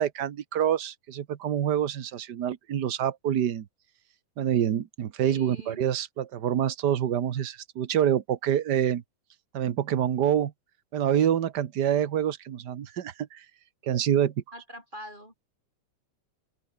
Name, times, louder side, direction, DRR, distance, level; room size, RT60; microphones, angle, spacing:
voice 1, 0.0-3.6 4.4-9.0 9.5-10.5 10.9-13.4 13.8-14.3, right 10 dB, 75° right, 0.9 m, -26 dB
voice 2, 5.2-5.8 14.5-15.3, equal, 15° right, 7.3 m, -44 dB
open air
omnidirectional pair, 3.5 m